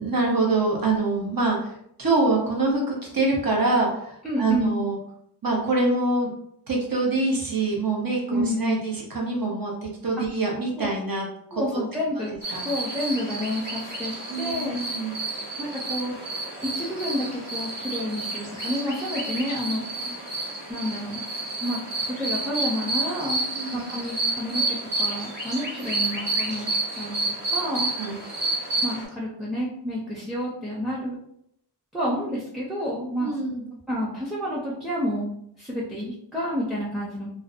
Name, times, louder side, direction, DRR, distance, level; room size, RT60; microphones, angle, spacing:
voice 1, 0.0-5.0 5.4-6.3 6.7-11.6 12.5-12.6 14.3-15.1 20.0-20.2 23.5-23.8 28.0-28.2 33.2-33.6, right 3 dB, 55° right, -2 dB, 0.8 m, -25 dB
voice 2, 4.2-4.8 8.3-8.8 10.8-10.9 11.5-12.3 12.6-14.8 15.6-16.2 16.6-20.0 20.7-21.2 21.6-23.4 23.7-26.7 26.9-27.9 28.8-31.2 31.9-33.3 33.9-37.3, equal, ahead, -5 dB, 0.5 m, -29 dB
sound 1, 12.4-29.0, right 2 dB, 90° right, 1.2 m, -30 dB
2.5 x 2.1 x 2.4 m, 0.72 s
wide cardioid pair, 50°, 41 cm